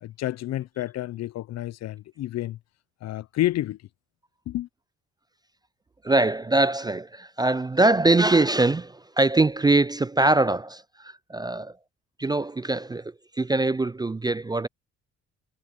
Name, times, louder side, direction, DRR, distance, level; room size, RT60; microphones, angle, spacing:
voice 1, 0.0-2.6 3.0-3.8 4.5-4.7, left 14 dB, 60° left, 0.5 m, -29 dB
voice 2, 6.0-11.8 12.2-14.7, right 2 dB, 15° right, 0.3 m, -23 dB
cardioid pair, 90°, 30 cm